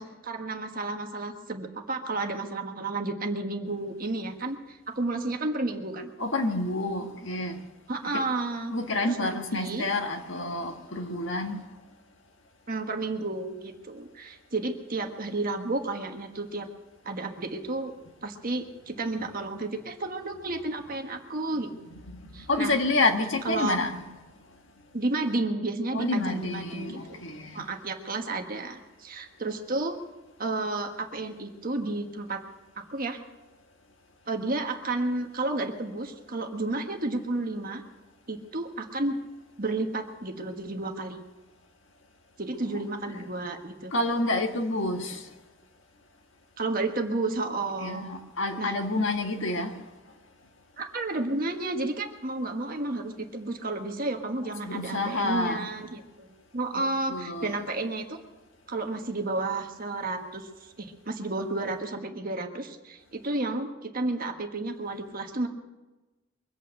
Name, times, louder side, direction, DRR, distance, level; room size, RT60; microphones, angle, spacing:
voice 1, 0.0-6.1 7.9-8.7 9.0-9.8 12.7-16.7 17.0-17.9 18.2-21.7 22.3-22.8 23.4-23.8 24.9-27.2 27.5-30.0 30.4-32.4 32.8-33.2 34.3-37.8 38.3-39.2 39.6-41.2 42.4-43.9 46.6-48.0 48.6-48.7 50.8-58.2 58.7-60.5 60.8-65.5, right 2 dB, 40° right, 1.4 m, -32 dB
voice 2, 6.2-7.6 8.1-8.2 8.7-11.7 22.1-24.0 25.9-27.7 42.6-42.8 43.1-43.2 43.9-45.3 47.8-49.8 54.6-55.7 56.7-57.6, left 2 dB, 60° left, 1.7 m, -29 dB
23.5 x 8.7 x 6.6 m
head